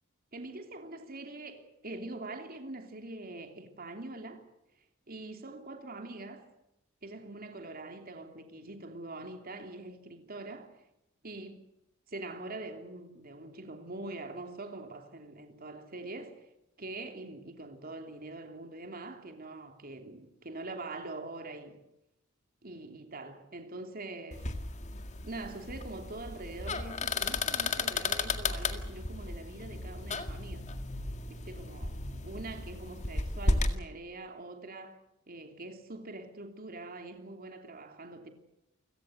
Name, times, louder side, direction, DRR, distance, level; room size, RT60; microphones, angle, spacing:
voice 1, 0.3-4.4 5.1-6.5 7.0-10.8 11.2-11.6 12.1-16.5 16.8-21.8 22.6-24.5 25.2-30.7 31.3-35.0 35.3-38.3, right 2 dB, 45° right, 3.0 m, -44 dB
sound 1, 24.3-33.8, left 3 dB, 35° left, 2.0 m, -34 dB
29.0 x 17.5 x 7.9 m
head